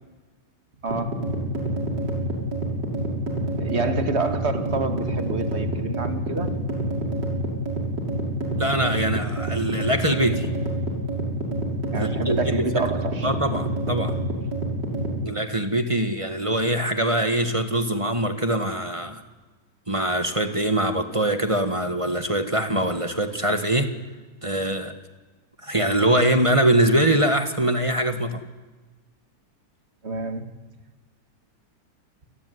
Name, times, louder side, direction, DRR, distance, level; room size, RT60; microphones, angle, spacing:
voice 1, 0.8-1.3 3.6-6.5 11.9-13.3 30.0-30.5, right 3 dB, 35° right, 7 dB, 2.6 m, -28 dB
sound 1, 0.9-15.2, right 1 dB, 75° right, 6.9 m, -27 dB
voice 2, 8.6-10.5 12.0-12.7 13.2-14.2 15.2-19.2 19.9-23.9 24.4-25.0 25.6-28.4, right 1 dB, 20° right, 8 dB, 1.8 m, -23 dB
28.5 x 20.5 x 9.8 m, 1.2 s
omnidirectional pair, 1.9 m